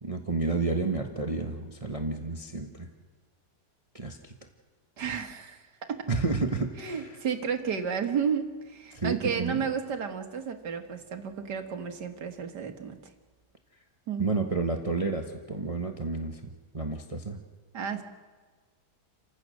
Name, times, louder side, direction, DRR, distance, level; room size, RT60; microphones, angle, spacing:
voice 1, 0.0-2.9 3.9-4.3 6.1-7.2 8.9-9.6 14.2-17.4, right 3 dB, 20° right, 4 dB, 1.3 m, -31 dB
voice 2, 5.0-6.1 6.8-13.0 14.1-14.3 17.7-18.0, right 7 dB, 75° right, 6 dB, 2.2 m, -32 dB
29.5 x 16.0 x 6.5 m, 1.4 s
omnidirectional pair, 1.8 m